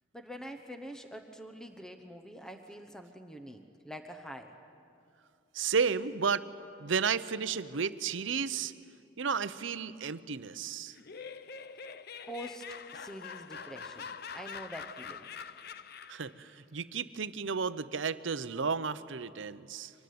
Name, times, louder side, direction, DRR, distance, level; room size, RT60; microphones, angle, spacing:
voice 1, 0.1-4.6 12.3-12.7 12.9-15.3, equal, 5° left, 6 dB, 1.0 m, -45 dB
voice 2, 5.5-6.4 6.8-8.7 9.2-10.9 16.1-19.9, right 5 dB, 65° right, 14 dB, 0.7 m, -32 dB
Laughter, 10.9-16.3, left 6 dB, 50° left, 0.7 m, -45 dB
24.5 x 19.5 x 9.5 m, 2.5 s
head